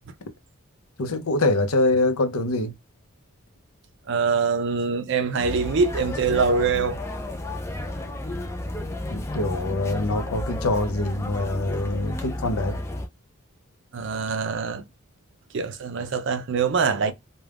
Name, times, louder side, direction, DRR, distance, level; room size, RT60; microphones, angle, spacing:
voice 1, 1.0-2.7 9.1-12.8, left 2 dB, 75° left, 0.6 m, -24 dB
voice 2, 4.1-7.0 13.9-14.8 15.5-17.1, right 5 dB, 55° right, 0.4 m, -24 dB
sound 1, 5.4-13.1, left 1 dB, 10° left, 0.3 m, -32 dB
2.4 x 2.2 x 3.3 m
head